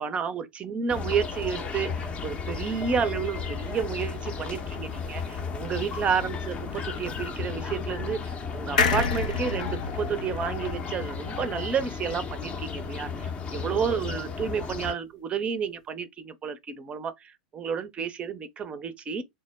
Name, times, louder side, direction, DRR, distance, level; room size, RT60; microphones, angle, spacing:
voice 1, 0.0-19.2, right 6 dB, 25° right, 0.6 m, -31 dB
sound 1, 0.9-14.9, left 5 dB, 25° left, 0.7 m, -34 dB
sound 2, 8.8-12.2 12.6-12.7 12.9-13.0, left 5 dB, 70° left, 0.6 m, -29 dB
3.3 x 2.1 x 3.3 m
figure-of-eight pair, 95°, 5 cm